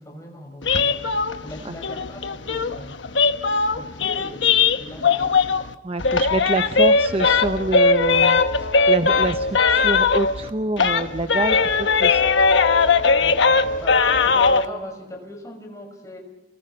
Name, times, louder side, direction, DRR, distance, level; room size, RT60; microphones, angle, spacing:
voice 1, 0.0-3.0 3.7-5.4 13.2-16.2, left 1 dB, 20° left, 2 dB, 5.8 m, -39 dB
sound 1, 0.6-5.7 6.0-10.5 10.8-14.7, left 4 dB, 90° left, 1.1 m, -19 dB
voice 2, 5.8-8.4 8.9-12.3, right 2 dB, 30° right, 8 dB, 0.7 m, -26 dB
29.0 x 22.0 x 5.7 m, 1.1 s
head